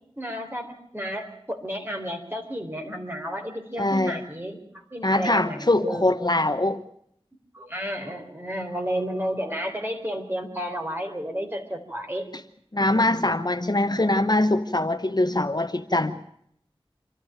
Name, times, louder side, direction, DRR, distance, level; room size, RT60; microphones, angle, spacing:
voice 1, 0.2-6.0 7.5-12.3 12.8-13.3 13.8-14.1, equal, 20° right, 3 dB, 4.0 m, -32 dB
voice 2, 3.8-4.2 5.0-6.8 12.7-16.2, left 2 dB, 45° left, 9 dB, 0.9 m, -23 dB
26.0 x 13.0 x 9.0 m, 0.70 s
wide cardioid pair, 45°, 10 cm